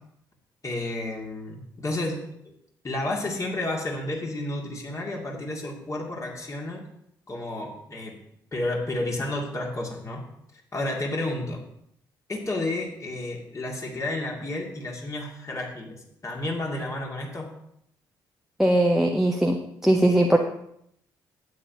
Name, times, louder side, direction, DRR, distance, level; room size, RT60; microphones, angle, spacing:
voice 1, 0.6-2.2 2.8-6.9 7.3-8.2 8.5-10.2 10.7-11.6 12.3-17.5, left 2 dB, 30° left, 0 dB, 2.4 m, -31 dB
voice 2, 18.6-20.4, right 1 dB, 5° right, 3 dB, 0.8 m, -20 dB
12.0 x 9.3 x 2.9 m, 0.73 s
figure-of-eight pair, 45°, 11 cm